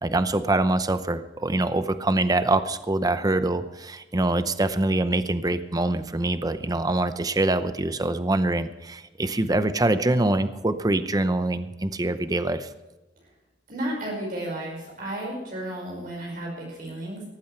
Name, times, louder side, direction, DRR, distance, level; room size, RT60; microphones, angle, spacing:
voice 1, 0.0-12.7, right 2 dB, 20° right, 11 dB, 0.7 m, -24 dB
voice 2, 13.7-17.2, right 1 dB, 50° right, -3 dB, 5.4 m, -33 dB
18.0 x 14.5 x 3.3 m, 1.1 s
head